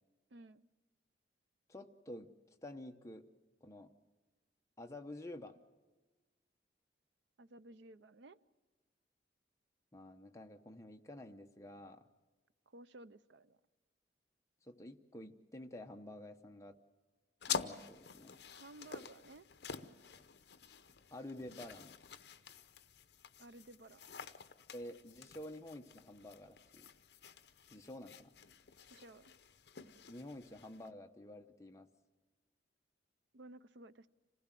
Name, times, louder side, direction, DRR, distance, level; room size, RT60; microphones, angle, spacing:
voice 1, 0.3-0.7 7.4-8.4 12.7-13.6 18.5-19.5 23.4-24.0 28.9-29.3 33.3-34.1, right 2 dB, 80° right, 15 dB, 0.6 m, -55 dB
voice 2, 1.7-2.3 2.6-3.3 3.6-3.9 4.8-5.5 9.9-12.0 14.6-16.7 17.5-18.4 21.1-21.9 24.7-26.9 27.7-28.3 30.1-31.9, left 1 dB, 15° left, 4 dB, 0.9 m, -50 dB
sound 1, 17.4-30.9, left 7 dB, 65° left, 0.7 m, -48 dB
26.5 x 16.5 x 7.6 m, 1.2 s
head